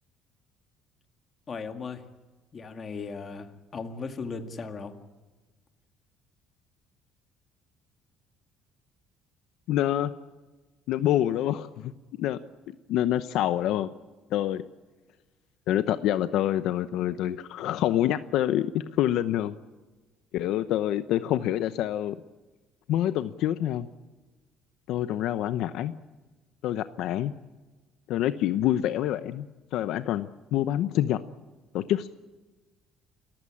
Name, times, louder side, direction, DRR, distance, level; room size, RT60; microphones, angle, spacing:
voice 1, 1.5-2.0 2.5-4.9, left 4 dB, 30° left, 7 dB, 1.9 m, -37 dB
voice 2, 9.7-10.1 10.9-11.9 12.2-12.4 12.9-13.9 14.3-14.6 15.7-19.5 20.3-22.2 22.9-23.9 24.9-25.9 26.6-27.3 28.1-31.2 31.7-32.1, left 12 dB, 65° left, 12 dB, 0.8 m, -26 dB
29.0 x 15.0 x 8.7 m, 1.2 s
cardioid pair, 160°, 0 cm